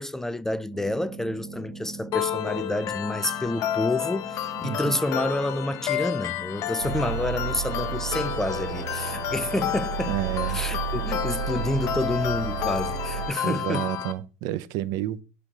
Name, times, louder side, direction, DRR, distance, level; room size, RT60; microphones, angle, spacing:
voice 1, 0.0-10.2 10.5-13.9, left 1 dB, 5° left, 0.4 m, -29 dB
sound 1, 0.7-13.9, right 3 dB, 35° right, 1.9 m, -45 dB
sound 2, 2.1-14.1, left 12 dB, 45° left, 1.0 m, -31 dB
sound 3, 6.8-13.3, right 8 dB, 90° right, 2.4 m, -32 dB
voice 2, 10.1-10.6 13.4-15.2, right 13 dB, 60° right, 0.7 m, -30 dB
11.0 x 4.4 x 5.5 m
supercardioid pair, 130°, 7 cm